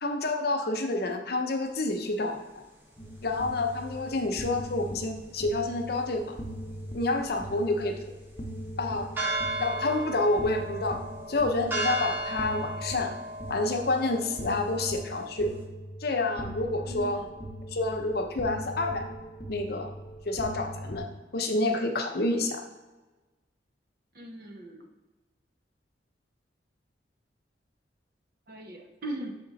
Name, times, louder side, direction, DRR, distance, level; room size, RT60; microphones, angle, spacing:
voice 1, 0.0-2.6 3.2-6.2 6.9-8.0 8.8-9.1 9.6-11.0 11.3-13.1 13.5-15.5 16.0-17.2 17.7-19.1 19.5-19.9 20.3-21.1 21.3-22.6, left 2 dB, 60° left, 4 dB, 0.7 m, -28 dB
sound 1, 3.0-21.0, equal, 25° left, 0.8 m, -40 dB
sound 2, 9.2-15.6, right 2 dB, 15° right, 1.0 m, -35 dB
voice 2, 16.9-17.3 24.1-24.9 28.5-29.3, right 1 dB, 55° right, 3 dB, 0.9 m, -39 dB
6.6 x 3.5 x 4.0 m, 1.2 s
head